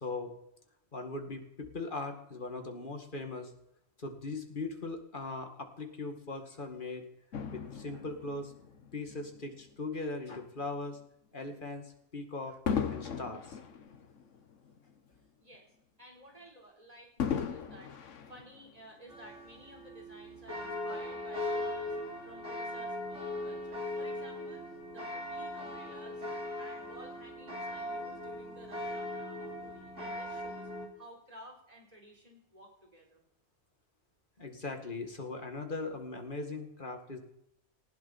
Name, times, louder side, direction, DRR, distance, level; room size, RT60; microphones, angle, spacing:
voice 1, 0.0-0.3 0.9-3.5 4.0-7.1 7.5-8.5 8.9-11.0 11.3-12.6 12.9-13.6 34.4-37.2, left 3 dB, 45° left, 4 dB, 2.2 m, -39 dB
Fireworks, 7.3-9.9 10.6-10.8 12.7-15.2 15.5-15.6 17.2-19.1 19.8-19.9, left 7 dB, 85° left, 1.5 m, -37 dB
voice 2, 15.4-26.3 26.6-30.7 31.0-33.2, right 1 dB, 30° right, -1 dB, 4.3 m, -54 dB
sound 1, 19.1-30.9, left 1 dB, 85° right, 4.2 m, -39 dB
19.0 x 15.5 x 4.3 m, 0.79 s
omnidirectional pair, 1.2 m